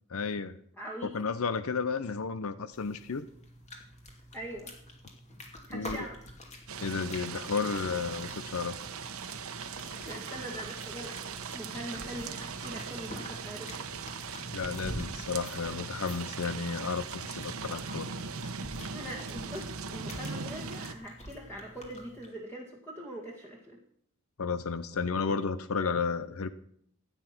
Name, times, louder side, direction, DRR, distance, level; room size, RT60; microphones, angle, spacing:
voice 1, 0.1-0.6 1.1-3.2 5.7-6.0 6.8-8.7 14.5-18.1 24.4-26.5, left 5 dB, 70° left, 13 dB, 0.7 m, -32 dB
voice 2, 0.8-1.2 4.3-4.7 5.7-6.2 10.0-13.9 18.9-23.8, equal, 10° left, -2 dB, 2.0 m, -42 dB
sound 1, 2.7-22.3, equal, 30° left, 2.6 m, -47 dB
sound 2, 6.7-20.9, right 5 dB, 70° right, 1.0 m, -40 dB
15.0 x 9.2 x 6.1 m, 0.66 s
head